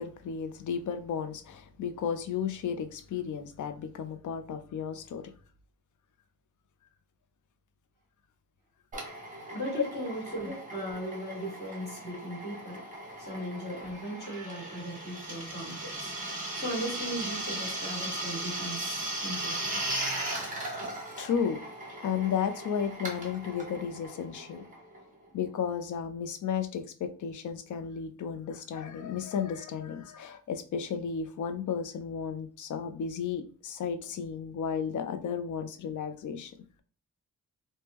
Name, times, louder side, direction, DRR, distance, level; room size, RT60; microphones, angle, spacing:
voice 1, 0.0-5.3 9.8-9.9 21.2-21.6 22.0-24.6 25.3-36.5, left 7 dB, 65° left, 0.4 m, -33 dB
Drill, 8.9-25.3, right 1 dB, 25° right, 0.9 m, -37 dB
voice 2, 9.5-12.8 13.2-16.1 16.5-19.8, equal, 30° left, 1.5 m, -38 dB
3.4 x 2.1 x 2.8 m
wide cardioid pair, 150°, 33 cm